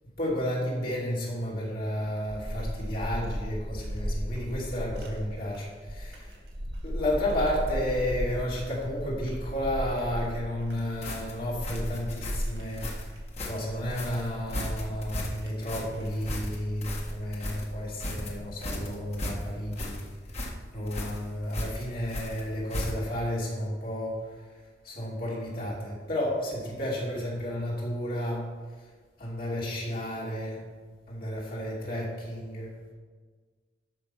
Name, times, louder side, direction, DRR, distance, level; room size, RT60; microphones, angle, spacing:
voice 1, 0.2-6.4 6.8-12.9 13.4-20.1 20.7-24.4 24.8-28.5 29.2-30.6 31.1-32.7, equal, 55° left, -6 dB, 3.0 m, -32 dB
sound 1, 1.8-18.7, equal, 70° right, 2.5 m, -37 dB
sound 2, 11.0-23.2, left 1 dB, 40° left, 1.7 m, -36 dB
13.0 x 5.1 x 6.1 m, 1.5 s
head